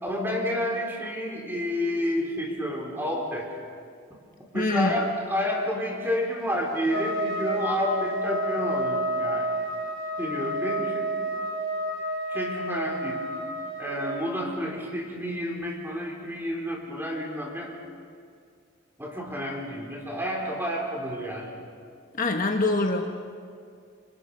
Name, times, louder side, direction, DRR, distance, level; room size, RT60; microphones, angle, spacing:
voice 1, 0.0-3.5 4.5-9.5 10.2-11.1 12.3-13.2 13.8-17.7 19.0-21.5, equal, 10° right, -1 dB, 4.0 m, -30 dB
voice 2, 4.5-4.9 22.1-23.1, left 2 dB, 40° left, 3 dB, 1.2 m, -24 dB
Trumpet, 6.9-14.2, right 1 dB, 90° right, 4.3 m, -30 dB
28.5 x 25.5 x 5.6 m, 2.2 s
head